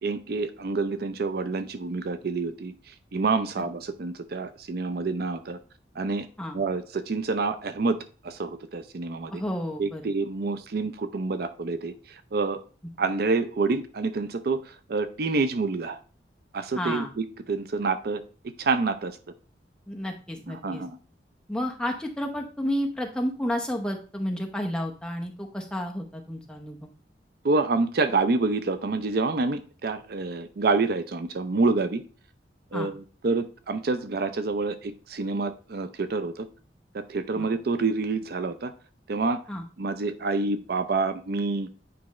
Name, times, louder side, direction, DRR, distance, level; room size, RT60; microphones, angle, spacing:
voice 1, 0.0-2.7 3.1-5.6 6.0-6.3 6.5-8.0 8.2-9.4 9.8-11.9 12.3-12.6 13.0-14.6 14.9-16.0 16.5-17.0 17.5-18.2 18.6-19.1 20.6-20.9 27.4-32.0 32.7-32.9 33.2-36.5 36.9-38.7 39.1-39.4 39.8-41.7, right 3 dB, 60° right, 10 dB, 0.5 m, -27 dB
voice 2, 9.3-10.1 16.7-17.1 19.9-20.8 21.5-26.9 32.7-32.9 37.3-37.5 39.5-39.6, equal, 5° left, 1 dB, 0.8 m, -31 dB
8.5 x 4.7 x 3.1 m, 0.37 s
head